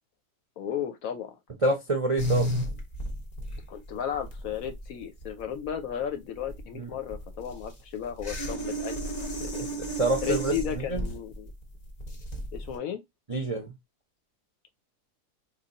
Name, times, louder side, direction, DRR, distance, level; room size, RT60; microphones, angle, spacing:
voice 1, 0.6-1.4 3.7-9.1 9.4-9.7 10.2-11.5 12.5-13.0, left 9 dB, 70° left, 0.9 m, -34 dB
voice 2, 1.6-2.5 6.7-6.9 10.0-11.0 13.3-13.7, right 2 dB, 40° right, 0.5 m, -27 dB
sound 1, 2.2-12.8, equal, 35° left, 0.7 m, -34 dB
3.1 x 2.3 x 3.9 m
omnidirectional pair, 1.7 m